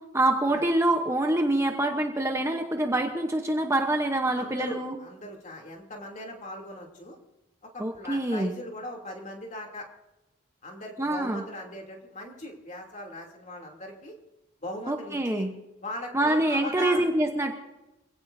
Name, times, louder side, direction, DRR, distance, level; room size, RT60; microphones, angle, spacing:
voice 1, 0.1-5.0 7.8-8.6 11.0-11.4 14.9-15.5 16.1-17.5, right 1 dB, 15° right, 4 dB, 0.9 m, -25 dB
voice 2, 4.4-7.2 7.6-9.9 10.6-14.2 14.6-15.5 15.8-17.1, left 1 dB, 35° left, 1 dB, 2.9 m, -39 dB
25.5 x 16.5 x 2.7 m, 1.0 s
head